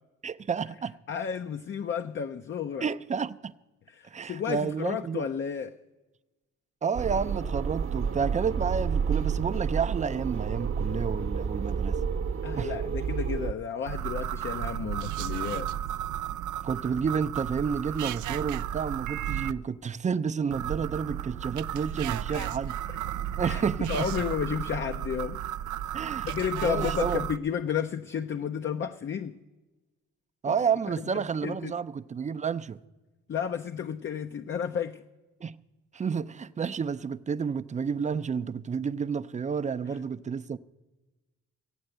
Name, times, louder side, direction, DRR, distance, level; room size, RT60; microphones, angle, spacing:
voice 1, 0.2-0.9 2.8-3.5 4.1-5.3 6.8-12.0 12.6-12.7 16.6-22.8 23.4-24.1 25.9-26.3 26.6-27.2 30.4-32.8 35.4-35.6 35.9-40.6, right 6 dB, 25° right, 0.4 m, -30 dB
voice 2, 1.1-2.9 3.9-5.8 12.4-15.7 22.3-22.6 23.4-25.4 25.9-26.0 26.2-29.4 30.5-30.6 31.1-31.7 33.3-35.0 39.9-40.0, left 7 dB, 40° left, 0.6 m, -32 dB
sound 1, 7.0-13.5, right 6 dB, 45° right, 0.9 m, -30 dB
sound 2, 13.9-19.5 20.5-27.4, right 11 dB, 75° right, 0.5 m, -33 dB
15.5 x 8.7 x 7.9 m
cardioid pair, 90°, 30 cm